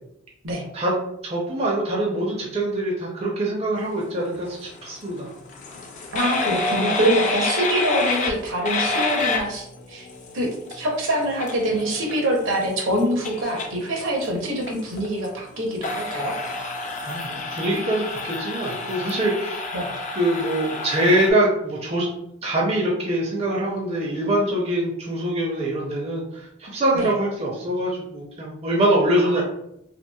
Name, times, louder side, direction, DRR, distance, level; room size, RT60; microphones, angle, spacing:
voice 1, 1.2-5.3 17.0-19.7 20.1-22.1 22.4-29.4, right 1 dB, 30° right, -3 dB, 0.4 m, -24 dB
sound 1, 4.3-21.3, left 3 dB, 35° left, 0.3 m, -29 dB
voice 2, 6.1-10.1 10.3-16.4 19.7-19.9 26.9-27.1 29.2-29.4, right 1 dB, 70° right, 0 dB, 0.7 m, -25 dB
2.9 x 2.4 x 2.2 m, 0.78 s
head